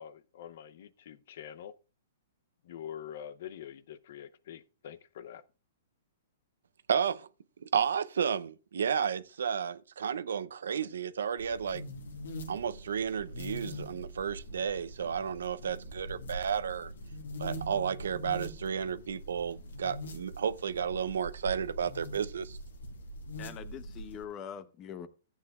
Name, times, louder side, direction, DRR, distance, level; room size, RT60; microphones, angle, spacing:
voice 1, 0.0-1.7 2.7-5.4, left 9 dB, 60° left, 0.7 m, -45 dB
voice 2, 6.9-7.3 7.6-11.8 12.5-16.9 17.4-22.6, right 7 dB, 80° right, 0.6 m, -32 dB
sound 1, 11.4-24.2, equal, 85° left, 2.0 m, -43 dB
voice 3, 23.4-25.1, left 8 dB, 30° left, 0.9 m, -43 dB
14.5 x 8.3 x 2.4 m
hypercardioid pair, 140°, 0 cm